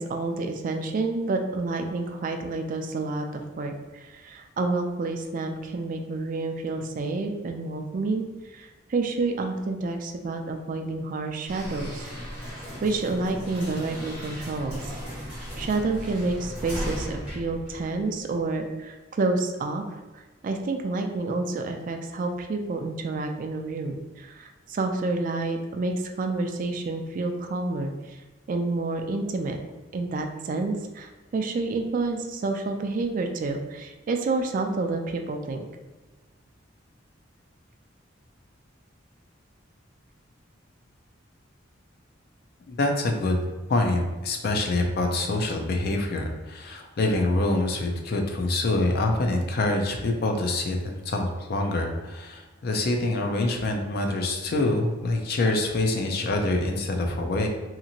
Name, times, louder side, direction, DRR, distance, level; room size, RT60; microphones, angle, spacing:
voice 1, 0.0-12.0 12.4-14.9 15.6-19.8 20.4-28.2 28.5-29.6 29.9-35.7, right 3 dB, 45° right, 4 dB, 0.3 m, -29 dB
sound 1, 11.5-18.4, equal, 5° right, 1.2 m, -37 dB
voice 2, 42.7-43.4 43.7-57.5, left 2 dB, 50° left, 3 dB, 0.4 m, -25 dB
2.9 x 2.5 x 2.7 m, 1.2 s
head